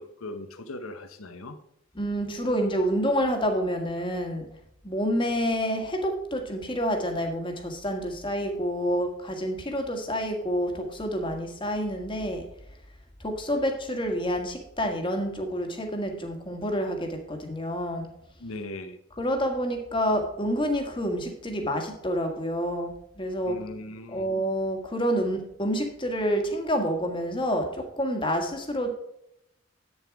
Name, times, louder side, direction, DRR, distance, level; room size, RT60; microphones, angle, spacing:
voice 1, 0.0-1.6 18.4-19.0 23.5-24.3, left 2 dB, 80° left, 9 dB, 0.9 m, -39 dB
voice 2, 1.9-4.5 4.8-12.4 13.2-18.1 19.2-23.6 24.1-28.9, equal, 25° left, 4 dB, 1.5 m, -28 dB
8.9 x 7.1 x 4.7 m, 0.78 s
head